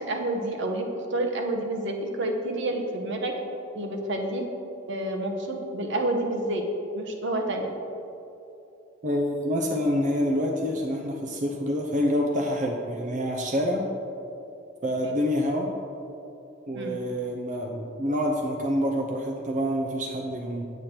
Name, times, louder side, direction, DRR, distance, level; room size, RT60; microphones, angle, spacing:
voice 1, 0.0-3.3 3.7-4.4 4.9-6.6 7.0-7.7 16.7-17.0, right 1 dB, 65° right, 3 dB, 1.0 m, -29 dB
voice 2, 9.0-13.9 14.8-15.7 16.7-20.7, equal, 40° right, 0 dB, 0.7 m, -27 dB
9.0 x 8.3 x 4.4 m, 2.8 s
head